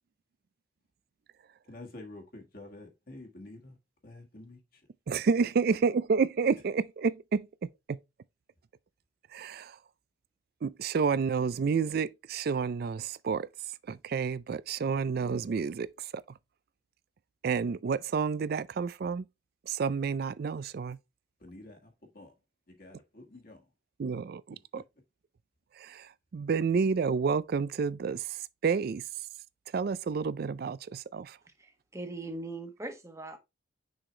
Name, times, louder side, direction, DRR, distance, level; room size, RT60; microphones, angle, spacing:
voice 1, 1.7-3.8 4.0-4.8 21.4-22.3 22.7-23.6 24.5-24.6, left 2 dB, 50° left, 1.5 m, -49 dB
voice 2, 5.1-8.0 9.3-9.8 10.6-13.5 13.9-16.2 17.4-19.3 19.7-21.0 24.0-24.8 25.8-29.0 29.7-31.4, right 5 dB, 50° right, 0.3 m, -30 dB
voice 3, 31.6-33.4, right 2 dB, 15° right, 1.1 m, -40 dB
6.3 x 4.8 x 3.2 m
head